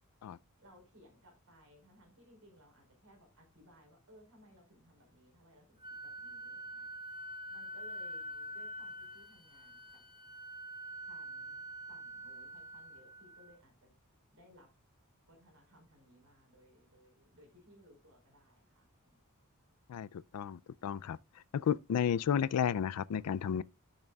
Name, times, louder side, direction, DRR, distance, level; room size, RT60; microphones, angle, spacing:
voice 1, 0.6-6.9 7.5-10.0 11.1-13.9 14.3-14.7 15.3-19.2, equal, 65° right, 4.8 m, -62 dB
Wind instrument woodwind instrument, 5.8-13.6, equal, 20° right, 1.5 m, -46 dB
voice 2, 20.3-21.2 21.5-23.6, left 8 dB, 90° left, 0.4 m, -32 dB
12.0 x 6.5 x 2.3 m
head